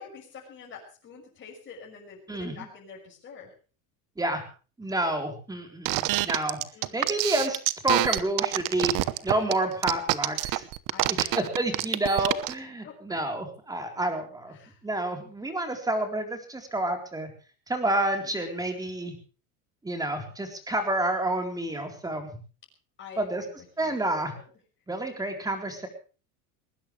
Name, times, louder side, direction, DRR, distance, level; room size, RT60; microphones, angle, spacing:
voice 1, 0.0-3.5 6.7-7.0 10.9-11.5 12.8-13.2 14.5-14.8 18.2-18.4 23.0-24.0, left 6 dB, 25° left, -1 dB, 6.1 m, -46 dB
voice 2, 2.3-2.7 4.2-4.4 4.8-6.6 6.9-8.9 9.2-10.6 11.1-14.6 14.8-17.3 17.7-19.1 19.8-22.3 23.2-23.5 23.8-24.3 24.9-25.9, right 1 dB, 10° right, 5 dB, 3.9 m, -29 dB
sound 1, 5.9-12.5, right 18 dB, 50° right, 1.1 m, -26 dB
20.0 x 19.5 x 3.3 m, 0.37 s
cardioid pair, 150°, 43 cm